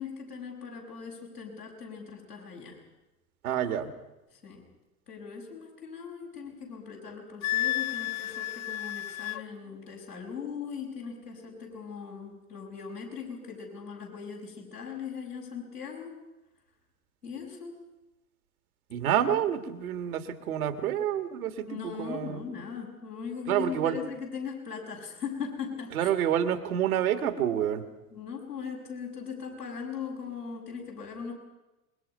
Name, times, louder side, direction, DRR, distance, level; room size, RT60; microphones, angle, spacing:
voice 1, 0.0-2.8 4.4-4.6 5.1-16.2 17.2-17.7 21.7-26.1 28.1-31.3, left 6 dB, 85° left, -2 dB, 6.4 m, -39 dB
voice 2, 3.4-3.9 18.9-22.4 23.5-24.0 25.9-27.8, right 10 dB, 65° right, 9 dB, 2.0 m, -28 dB
Wind instrument woodwind instrument, 7.4-9.4, left 14 dB, 40° left, 0.7 m, -31 dB
27.0 x 22.0 x 5.5 m, 1.0 s
figure-of-eight pair, 75°, 46 cm